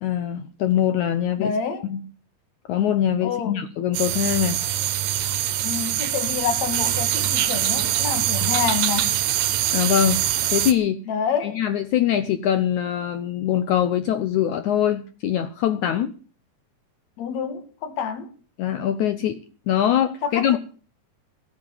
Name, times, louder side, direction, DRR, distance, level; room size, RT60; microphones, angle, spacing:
voice 1, 0.0-1.5 1.9-2.0 2.7-4.6 9.7-10.2 10.5-11.1 11.4-16.1 18.6-19.4 19.7-20.6, left 10 dB, 70° left, 2.0 m, -23 dB
voice 2, 1.4-1.9 3.2-3.7 5.6-9.2 11.1-11.6 17.2-18.3 20.2-20.6, left 7 dB, 55° left, 2.9 m, -28 dB
sound 1, 3.9-10.7, right 12 dB, 75° right, 2.9 m, -23 dB
18.0 x 7.9 x 9.0 m
omnidirectional pair, 4.2 m